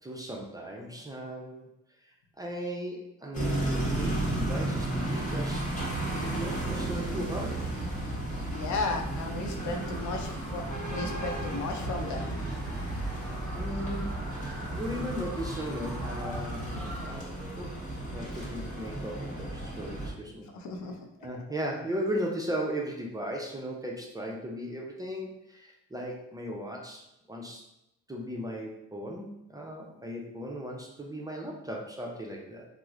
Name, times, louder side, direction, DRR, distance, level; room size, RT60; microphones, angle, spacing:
voice 1, 0.0-1.7 2.4-5.7 6.4-7.7 13.5-17.8 18.1-20.5 21.2-27.6 28.1-32.7, equal, 10° right, -1 dB, 0.5 m, -37 dB
sound 1, 3.3-20.1, right 1 dB, 25° left, 1.1 m, -33 dB
voice 2, 8.5-10.6 10.9-12.3 20.5-20.9, left 3 dB, 70° left, 4 dB, 0.6 m, -34 dB
sound 2, 9.6-17.1, equal, 5° left, 1.2 m, -42 dB
3.0 x 2.0 x 3.6 m, 0.86 s
cardioid pair, 90°, 30 cm